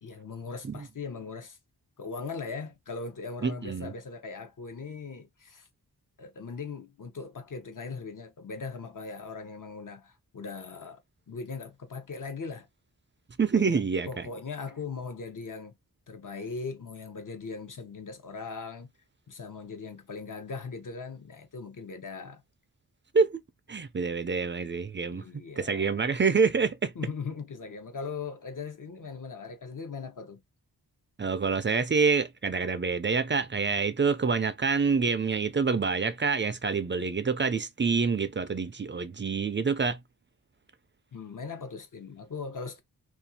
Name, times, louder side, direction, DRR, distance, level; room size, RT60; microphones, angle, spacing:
voice 1, 0.0-1.6 2.0-5.7 6.2-11.0 11.3-12.7 13.5-15.7 16.1-18.9 19.3-22.4 25.1-26.0 26.9-30.4 41.1-42.8, left 4 dB, 50° left, 0.9 m, -39 dB
voice 2, 3.4-3.9 13.4-14.3 23.1-23.4 23.7-25.2 25.6-26.9 31.2-40.0, right 5 dB, 30° right, 0.4 m, -27 dB
2.5 x 2.3 x 2.7 m
wide cardioid pair, 65°, 40 cm